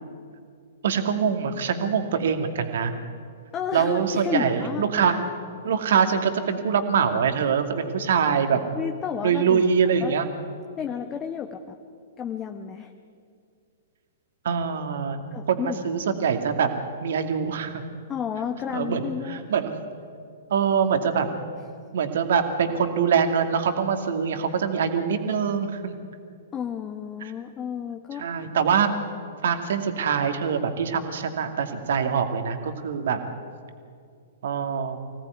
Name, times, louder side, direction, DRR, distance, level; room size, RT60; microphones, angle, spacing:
voice 1, 0.8-2.9 3.7-5.2 5.6-8.6 9.2-10.3 14.4-15.2 15.5-16.7 17.0-17.8 18.7-19.7 20.5-21.3 21.9-25.9 28.2-28.9 29.4-33.2 34.4-35.0, right 7 dB, 60° right, 6 dB, 2.4 m, -24 dB
voice 2, 3.5-4.8 8.7-9.7 10.0-10.1 10.8-11.8 12.2-12.9 15.3-15.9 18.1-19.4 26.5-28.2, left 8 dB, 20° left, 5 dB, 1.3 m, -31 dB
24.5 x 18.0 x 9.6 m, 2.3 s
figure-of-eight pair, 110°, 0 cm